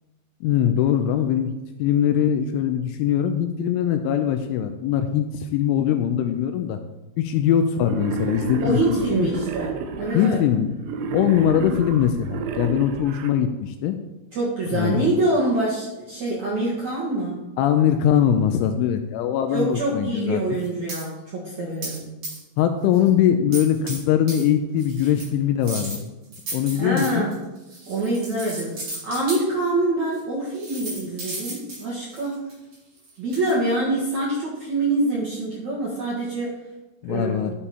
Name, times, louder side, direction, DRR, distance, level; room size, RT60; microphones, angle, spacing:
voice 1, 0.4-6.8 7.2-9.3 10.1-10.7 11.1-14.0 14.7-15.1 17.6-20.4 22.6-26.1 26.5-27.3 37.0-37.5, left 9 dB, 85° left, 7 dB, 2.8 m, -21 dB
Wild animals, 7.8-10.3 10.8-13.3, right 5 dB, 90° right, 2.3 m, -31 dB
voice 2, 8.6-9.7 10.0-10.4 14.3-17.4 19.5-22.1 26.7-27.4 27.9-32.4 33.2-36.5 37.1-37.5, right 2 dB, 65° right, -5 dB, 1.8 m, -25 dB
sound 1, 20.5-21.0 21.8-22.0 22.2-22.6 22.9-23.1 23.5-24.0 24.3-24.4 24.8-25.3 25.6-29.4 30.1-30.2 30.5-33.5, right 2 dB, 35° right, 4.9 m, -34 dB
12.0 x 7.0 x 4.3 m, 1.0 s
omnidirectional pair, 5.9 m